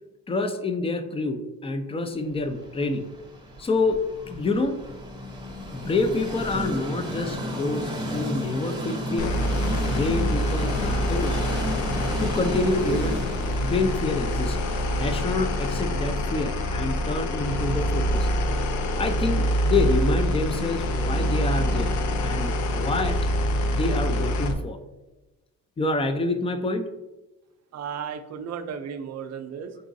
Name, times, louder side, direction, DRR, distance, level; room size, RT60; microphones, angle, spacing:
voice 1, 0.3-3.1 3.6-4.8 5.7-9.4 9.9-11.4 12.2-13.3 13.6-14.6 15.0-18.3 19.0-23.2 23.6-24.8 25.8-26.9, left 3 dB, 20° left, 8 dB, 0.4 m, -27 dB
Train, 2.4-20.4, equal, 15° right, 0.8 m, -35 dB
sound 1, 9.2-24.5, equal, 75° left, 0.6 m, -25 dB
voice 2, 27.7-29.8, right 7 dB, 60° right, 8 dB, 0.5 m, -34 dB
4.0 x 3.6 x 2.6 m, 1.1 s
cardioid pair, 90°, 30 cm